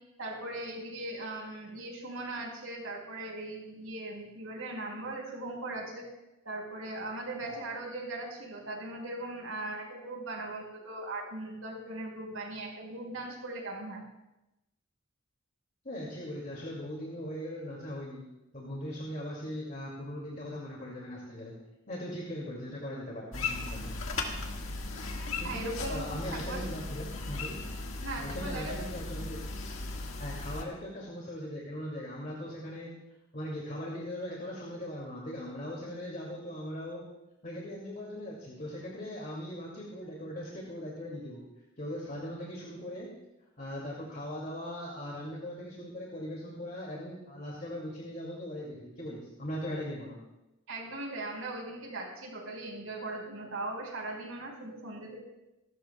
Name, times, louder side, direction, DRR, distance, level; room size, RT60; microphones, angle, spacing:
voice 1, 0.2-6.0 6.4-14.0 25.4-26.0 26.3-26.7 28.0-28.8 50.7-55.2, right 2 dB, 85° right, 0 dB, 4.8 m, -39 dB
voice 2, 15.8-18.2 18.5-21.5 21.9-23.9 25.4-27.6 28.2-29.4 30.2-32.9 33.3-37.1 37.4-41.4 41.8-43.1 43.6-50.2, equal, 40° left, -3 dB, 2.4 m, -39 dB
sound 1, 23.3-30.6, left 3 dB, 75° left, 1.7 m, -37 dB
27.0 x 13.0 x 2.3 m, 0.97 s
head